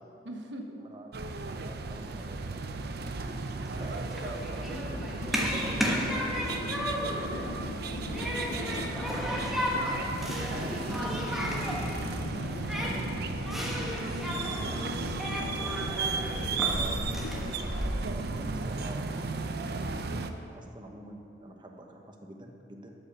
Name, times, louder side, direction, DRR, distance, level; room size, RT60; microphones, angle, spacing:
voice 1, 0.2-0.8 10.5-11.9 12.7-12.9 13.6-14.9 15.4-15.6 18.0-18.2 18.5-18.7, right 1 dB, 75° right, 2 dB, 1.1 m, -42 dB
voice 2, 0.8-1.1 1.6-2.8 3.2-3.4 3.8-7.7 8.4-11.2 12.6-13.1 16.7-17.8 18.1-19.2 19.9-22.9, right 1 dB, 25° right, 2 dB, 1.0 m, -46 dB
sound 1, 1.1-20.3, right 4 dB, 60° right, 0.6 m, -35 dB
Human group actions, 3.6-17.9, equal, ahead, 1.3 m, -34 dB
sound 2, 4.7-17.5, left 4 dB, 60° left, 0.3 m, -41 dB
12.0 x 5.7 x 6.8 m, 2.6 s
head